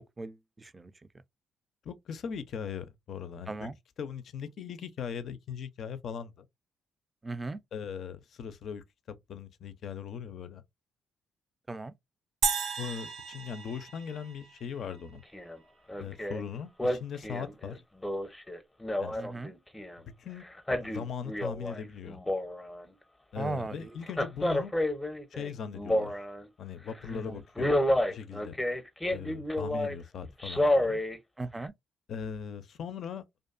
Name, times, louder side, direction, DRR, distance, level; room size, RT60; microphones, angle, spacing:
voice 1, 1.8-6.5 7.7-10.6 12.8-15.2 16.0-17.8 19.0-19.2 20.2-20.4 20.8-22.2 23.3-24.7 25.3-26.1 26.6-27.8 28.1-28.6 29.1-31.0 32.1-33.2, left 7 dB, 60° left, 0.4 m, -39 dB
voice 2, 7.2-7.6 11.7-11.9 19.2-19.5 23.4-23.7 31.4-31.7, right 3 dB, 25° right, 0.4 m, -36 dB
sound 1, 12.4-14.9, right 6 dB, 70° right, 0.6 m, -34 dB
Male speech man speaking, 15.3-15.6 15.9-16.4 16.8-20.0 20.5-21.8 22.1-22.9 24.1-26.5 26.9-27.1 27.6-30.0 30.4-31.2 31.6-31.7, left 1 dB, 15° left, 0.6 m, -30 dB
2.5 x 2.2 x 2.4 m
hypercardioid pair, 50°, 0 cm